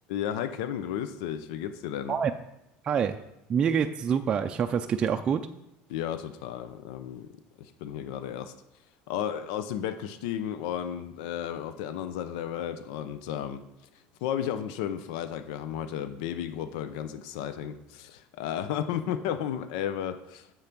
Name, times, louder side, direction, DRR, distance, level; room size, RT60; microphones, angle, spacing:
voice 1, 0.1-2.2 5.9-7.3 7.6-8.5 9.1-13.6 14.2-20.5, left 10 dB, 85° left, 11 dB, 0.7 m, -33 dB
voice 2, 2.8-3.2 3.5-5.4, right 7 dB, 25° right, 5 dB, 0.4 m, -26 dB
8.7 x 7.3 x 6.0 m, 0.89 s
cardioid pair, 165°, 4 cm